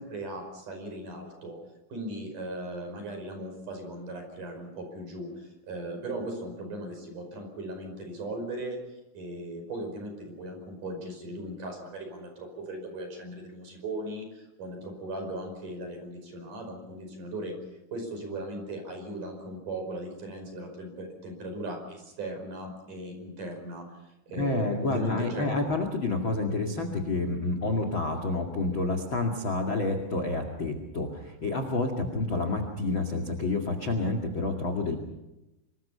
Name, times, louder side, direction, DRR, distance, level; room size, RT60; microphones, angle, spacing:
voice 1, 0.0-1.6 1.9-8.8 9.1-17.5 17.9-25.7, right 1 dB, 40° right, 5 dB, 6.4 m, -38 dB
voice 2, 24.4-34.9, left 2 dB, 50° left, 6 dB, 1.5 m, -29 dB
26.0 x 24.5 x 5.7 m, 0.96 s
omnidirectional pair, 6.0 m